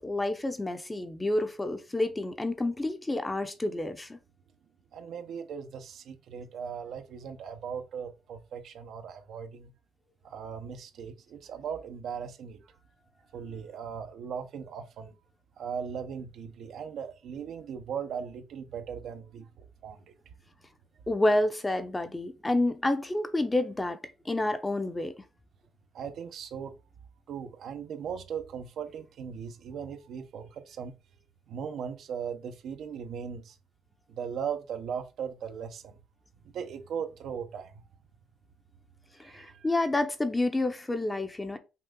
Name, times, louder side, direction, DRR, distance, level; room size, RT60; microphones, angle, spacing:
voice 1, 0.0-4.2 21.1-24.0 24.3-25.1 39.2-41.6, left 2 dB, 15° left, 0.7 m, -29 dB
voice 2, 4.9-9.7 10.2-12.6 13.3-15.2 15.6-20.1 25.9-26.7 27.3-30.9 31.5-33.6 34.1-35.9 36.5-37.8 39.2-39.7, right 7 dB, 75° right, 0.8 m, -38 dB
5.7 x 2.4 x 3.7 m
cardioid pair, 90°, 0 cm